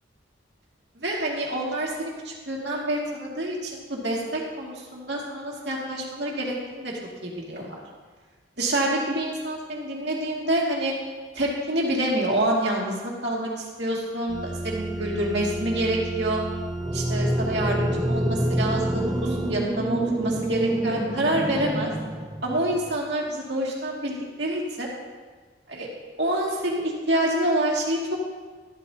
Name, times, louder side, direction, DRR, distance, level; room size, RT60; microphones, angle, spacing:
voice 1, 0.9-6.9 7.2-7.8 8.6-10.9 11.3-16.4 16.9-21.9 22.4-24.9 25.7-25.9 26.2-28.0, right 1 dB, 60° right, -3 dB, 2.4 m, -27 dB
sound 1, 14.3-19.5, right 2 dB, 40° right, 2.2 m, -33 dB
sound 2, 16.8-23.0, right 1 dB, 15° right, 0.8 m, -27 dB
13.5 x 13.0 x 2.9 m, 1.4 s
head